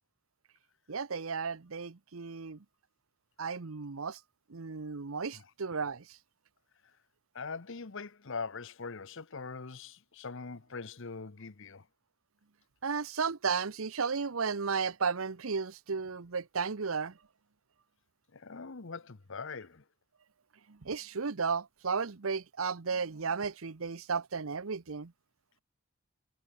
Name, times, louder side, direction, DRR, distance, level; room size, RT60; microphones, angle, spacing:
voice 1, 0.9-2.6 3.4-4.2 4.5-6.2 12.8-17.1 20.7-25.1, right 5 dB, 70° right, 0.8 m, -34 dB
voice 2, 7.3-11.9 18.3-19.8, left 4 dB, 60° left, 1.0 m, -42 dB
head